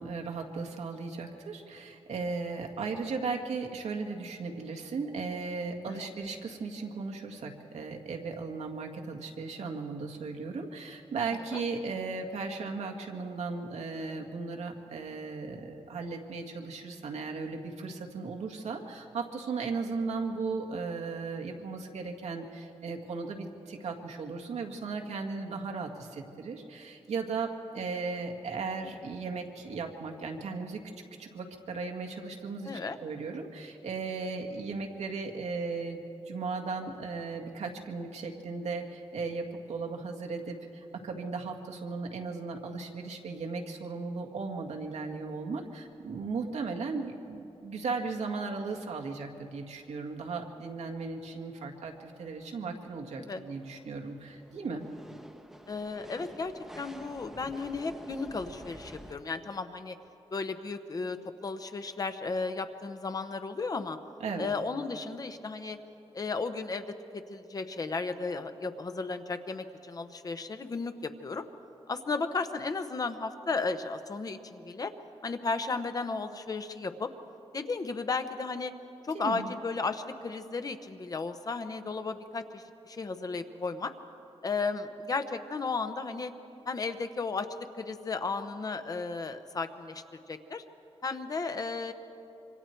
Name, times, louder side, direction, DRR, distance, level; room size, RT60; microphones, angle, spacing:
voice 1, 0.0-30.8 31.2-54.8 64.2-64.5 79.1-79.5, right 4 dB, 85° right, 2 dB, 1.9 m, -36 dB
voice 2, 11.2-11.6 32.6-33.0 53.2-53.4 55.7-60.0 60.3-64.0 64.4-65.8 66.1-66.8 67.1-71.5 71.9-74.9 75.2-77.1 77.5-78.7 79.0-83.9 84.4-86.3 86.7-87.5 87.8-90.6 91.0-91.9, left 4 dB, 35° left, 8 dB, 0.9 m, -34 dB
sound 1, 45.1-45.2 45.5-45.7 46.2-46.3 49.3-49.4 49.9-59.1, equal, 5° right, 0.9 m, -51 dB
26.0 x 24.5 x 4.5 m, 2.8 s
wide cardioid pair, 165°, 11 cm